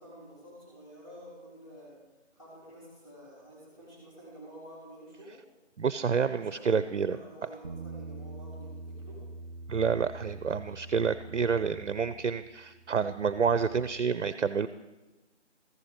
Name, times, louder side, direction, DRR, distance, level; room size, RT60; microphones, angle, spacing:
voice 1, 0.0-2.0 2.3-5.4 6.3-9.2, equal, 25° left, -7 dB, 4.0 m, -50 dB
voice 2, 5.8-7.2 9.7-14.7, right 6 dB, 70° right, 14 dB, 0.6 m, -28 dB
Bass guitar, 7.6-13.9, right 2 dB, 25° right, 1.2 m, -45 dB
14.0 x 6.0 x 5.1 m, 1.1 s
figure-of-eight pair, 165°, 36 cm